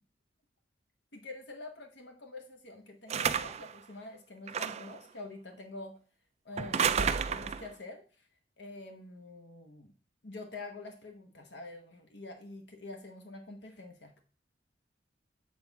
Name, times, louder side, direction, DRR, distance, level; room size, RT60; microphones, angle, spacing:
voice 1, 1.1-5.9 6.4-8.0 8.6-9.9 10.2-14.1, left 2 dB, 70° left, 4 dB, 1.1 m, -46 dB
sound 1, 3.1-3.7 4.5-5.0 6.6-7.7, right 7 dB, 35° right, 0.3 m, -31 dB
7.9 x 4.0 x 4.6 m, 0.37 s
head